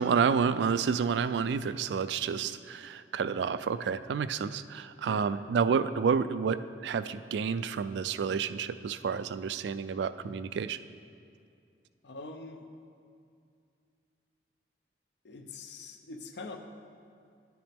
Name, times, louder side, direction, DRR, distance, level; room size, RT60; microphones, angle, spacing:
voice 1, 0.0-10.8, right 6 dB, 80° right, 13 dB, 0.3 m, -29 dB
voice 2, 12.0-12.7 15.2-16.6, left 3 dB, 80° left, 6 dB, 0.7 m, -44 dB
10.5 x 7.9 x 3.5 m, 2.4 s
head